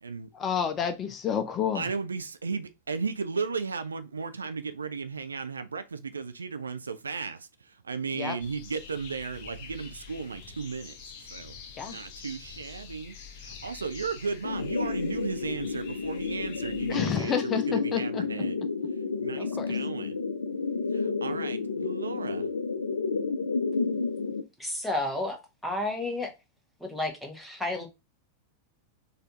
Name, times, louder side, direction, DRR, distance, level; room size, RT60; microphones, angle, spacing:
voice 1, 0.3-1.9 8.1-8.4 11.8-12.0 16.9-18.2 19.4-19.7, left 8 dB, 25° left, 0.6 m, -29 dB
voice 2, 1.7-11.5 11.8-18.6 19.2-20.2 20.9-22.5, right 5 dB, 75° right, 0.4 m, -35 dB
sound 1, 8.4-17.1, left 6 dB, 45° left, 0.9 m, -46 dB
sound 2, 14.4-24.4, left 4 dB, 70° left, 0.4 m, -31 dB
voice 3, 24.6-26.3 26.8-27.9, left 2 dB, ahead, 1.2 m, -31 dB
4.1 x 2.6 x 3.5 m
figure-of-eight pair, 90°, 0 cm